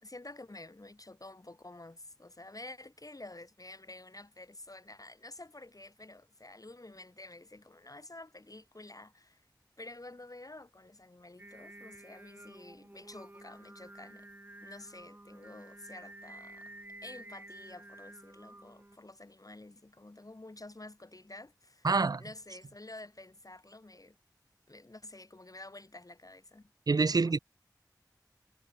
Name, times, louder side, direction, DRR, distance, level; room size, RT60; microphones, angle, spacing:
voice 1, 0.0-9.4 9.8-14.3 14.6-16.7 17.0-21.9 22.2-24.2 24.7-26.7 27.1-27.3, left 2 dB, 55° left, 1.6 m, -50 dB
Singing, 11.4-19.0, right 1 dB, 25° right, 1.0 m, -51 dB
voice 2, 21.8-22.2 26.9-27.4, right 4 dB, 60° right, 0.3 m, -26 dB
wide cardioid pair, 40°, 7 cm